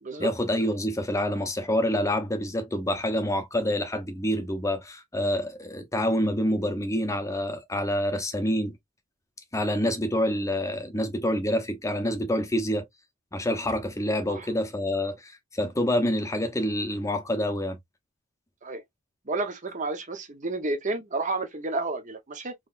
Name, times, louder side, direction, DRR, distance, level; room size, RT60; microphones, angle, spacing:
voice 1, 0.2-8.7 9.5-12.8 13.3-17.8, left 1 dB, 15° left, 0.8 m, -27 dB
voice 2, 19.3-22.5, right 2 dB, 35° right, 0.9 m, -31 dB
3.9 x 3.2 x 2.4 m
head